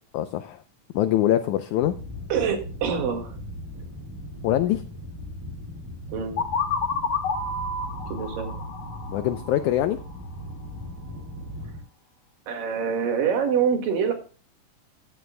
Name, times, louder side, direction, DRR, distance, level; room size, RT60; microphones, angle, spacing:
voice 1, 0.1-0.6 0.9-1.9 4.4-4.8 9.1-10.0, left 12 dB, 80° left, 10 dB, 1.8 m, -23 dB
sound 1, 1.8-11.8, equal, 5° right, 2.6 m, -38 dB
voice 2, 2.3-3.4 6.1-6.4 8.1-8.6 12.5-14.1, right 7 dB, 75° right, 5 dB, 3.6 m, -25 dB
sound 2, 6.4-10.1, left 4 dB, 55° left, 2.5 m, -30 dB
15.5 x 11.0 x 2.2 m, 0.37 s
omnidirectional pair, 4.0 m